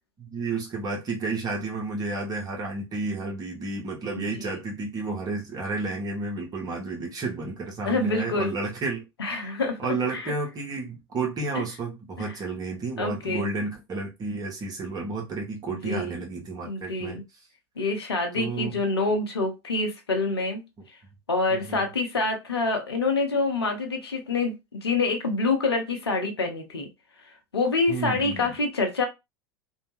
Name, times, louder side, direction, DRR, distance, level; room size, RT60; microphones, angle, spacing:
voice 1, 0.2-9.0 9.4-17.2 18.4-18.8 21.5-21.9 27.9-28.5, right 3 dB, 30° right, 0.9 m, -31 dB
voice 2, 4.1-4.6 7.9-8.5 9.2-9.8 10.1-10.3 12.2-12.3 13.0-13.5 15.8-16.1 16.6-17.2 17.8-20.6 21.3-26.9 27.5-29.1, left 3 dB, 80° left, 0.7 m, -26 dB
2.7 x 2.1 x 3.0 m
figure-of-eight pair, 80°, 13 cm